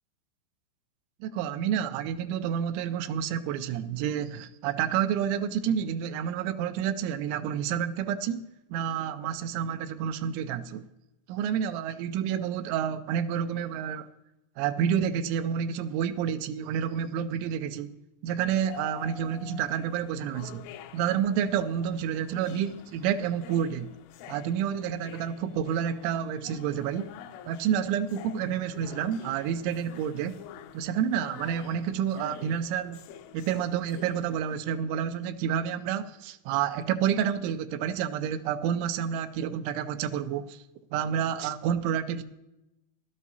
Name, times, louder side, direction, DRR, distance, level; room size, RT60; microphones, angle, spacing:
voice 1, 1.2-8.4 8.7-10.8 11.3-14.1 14.6-17.9 18.2-20.6 20.9-23.9 24.3-27.1 27.5-30.4 30.7-33.0 33.3-40.6 40.9-42.2, right 8 dB, 90° right, 3.0 m, -29 dB
sound 1, 18.6-34.6, left 9 dB, 80° left, 2.5 m, -48 dB
16.5 x 12.0 x 2.7 m
omnidirectional pair, 5.2 m